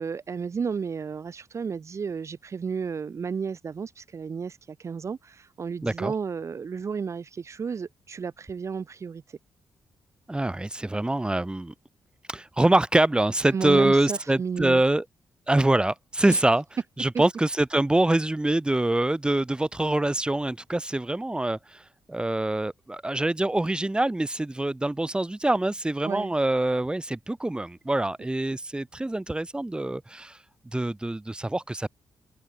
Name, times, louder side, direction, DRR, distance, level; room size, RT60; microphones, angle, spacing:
voice 1, 0.0-9.4 13.5-14.8 16.3-16.4 17.1-17.2 26.0-26.3, right 6 dB, 45° right, 1.2 m, -32 dB
voice 2, 5.8-6.1 10.3-11.7 12.3-15.0 15.5-16.6 17.0-21.8 22.1-30.4 30.7-31.9, right 1 dB, 15° right, 2.4 m, -25 dB
cardioid pair, 70°, 7 cm